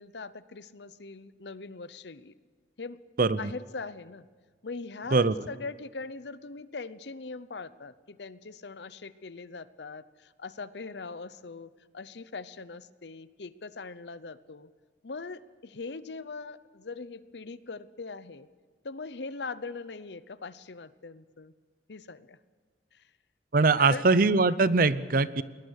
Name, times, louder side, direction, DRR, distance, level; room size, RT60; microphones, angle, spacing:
voice 1, 0.0-2.3 2.8-3.0 3.3-4.3 4.6-14.7 15.0-18.5 18.8-21.5 21.9-22.4 22.9-23.0 23.8-24.1, left 4 dB, 70° left, 15 dB, 0.8 m, -41 dB
voice 2, 3.2-3.5 5.1-5.3 23.5-25.4, right 3 dB, 50° right, 16 dB, 0.7 m, -22 dB
21.5 x 20.0 x 6.5 m, 1.5 s
head